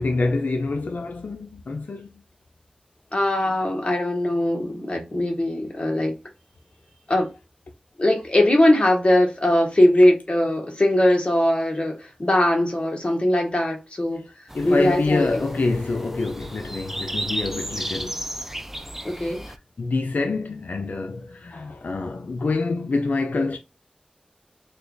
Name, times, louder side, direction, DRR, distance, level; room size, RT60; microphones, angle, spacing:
voice 1, 0.0-2.2 14.5-18.3 19.5-23.6, left 3 dB, 85° left, 0.4 m, -26 dB
voice 2, 3.1-6.1 7.1-7.3 8.0-15.3 19.0-19.4, left 1 dB, 40° left, 1.2 m, -20 dB
sound 1, 14.5-19.6, right 1 dB, 10° right, 0.4 m, -34 dB
3.2 x 2.3 x 3.9 m
wide cardioid pair, 60°, 3 cm